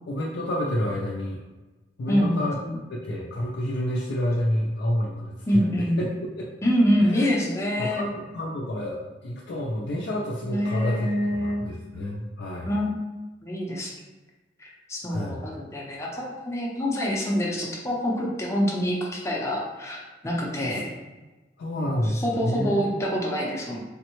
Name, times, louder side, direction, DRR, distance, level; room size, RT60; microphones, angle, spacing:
voice 1, 0.1-1.4 2.0-2.6 2.9-6.1 7.0-7.3 7.8-12.7 15.1-15.4 21.6-23.0, left 1 dB, 65° left, -4 dB, 0.4 m, -29 dB
voice 2, 2.1-2.8 5.5-6.1 6.6-8.0 10.5-11.6 12.7-13.0 13.4-13.9 14.6-20.9 21.9-23.8, equal, 15° left, -2 dB, 0.6 m, -26 dB
3.5 x 2.0 x 2.9 m, 1.2 s
head